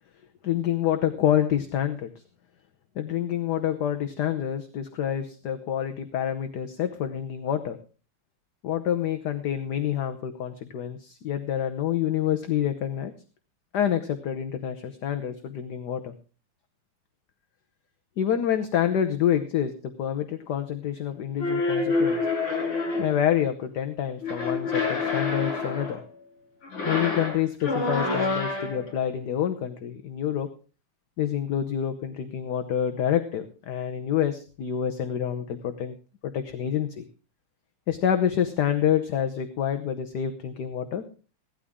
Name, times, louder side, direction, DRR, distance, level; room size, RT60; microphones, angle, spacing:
voice 1, 0.4-2.1 2.9-7.8 8.6-13.1 13.7-16.1 18.2-22.2 23.0-26.0 26.8-30.5 31.2-35.9 36.2-37.0 37.9-41.0, left 9 dB, 60° left, 7 dB, 1.3 m, -27 dB
sound 1, 21.4-23.2 24.2-26.0 26.6-28.9, left 3 dB, 85° left, 5.7 m, -27 dB
16.5 x 12.5 x 3.6 m, 0.36 s
omnidirectional pair, 2.4 m